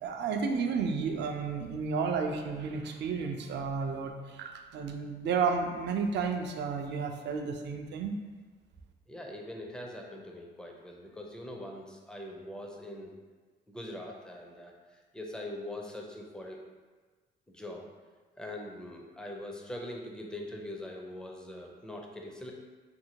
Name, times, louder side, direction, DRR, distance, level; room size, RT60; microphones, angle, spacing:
voice 1, 0.0-8.2, right 5 dB, 60° right, 4 dB, 0.4 m, -32 dB
voice 2, 9.1-13.1 13.7-16.6 17.5-17.9 18.4-22.5, left 1 dB, 5° left, 0 dB, 0.4 m, -42 dB
2.7 x 2.6 x 2.8 m, 1.4 s
cardioid pair, 90°, 20 cm